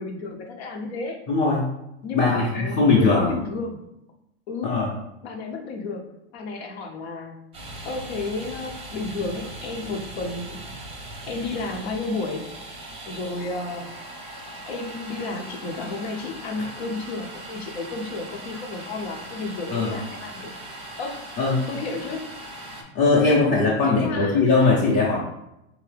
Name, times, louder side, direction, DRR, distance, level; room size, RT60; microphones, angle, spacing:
voice 1, 0.0-1.2 2.0-3.9 4.5-4.8 5.2-7.5 7.8-10.6 11.3-12.5 13.0-13.9 14.7-20.5 21.0-21.2 21.7-22.3 23.8-24.7, left 3 dB, 70° left, 3 dB, 0.9 m, -32 dB
voice 2, 1.3-1.7 2.1-3.3 4.6-4.9 19.7-19.9 21.4-21.6 22.9-25.2, left 3 dB, 25° left, -6 dB, 0.7 m, -20 dB
Domestic sounds home sounds, 7.5-22.8, right 1 dB, 20° right, 0.6 m, -39 dB
3.6 x 2.7 x 3.3 m, 0.86 s
supercardioid pair, 135°, 33 cm